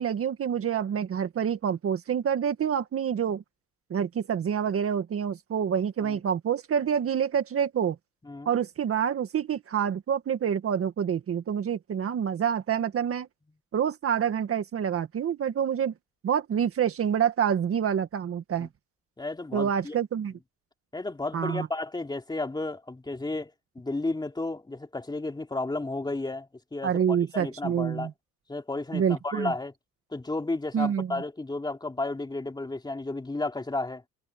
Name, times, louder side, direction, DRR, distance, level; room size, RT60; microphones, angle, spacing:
voice 1, 0.0-3.4 3.9-8.0 8.5-13.3 13.7-15.9 16.2-18.7 19.5-20.3 21.3-21.7 26.8-28.1 28.9-29.5 30.7-31.2, right 8 dB, 45° right, 1.9 m, -27 dB
voice 2, 19.2-20.0 20.9-28.1 28.5-29.7 30.1-34.0, left 2 dB, 15° left, 3.5 m, -33 dB
cardioid pair, 110°, 31 cm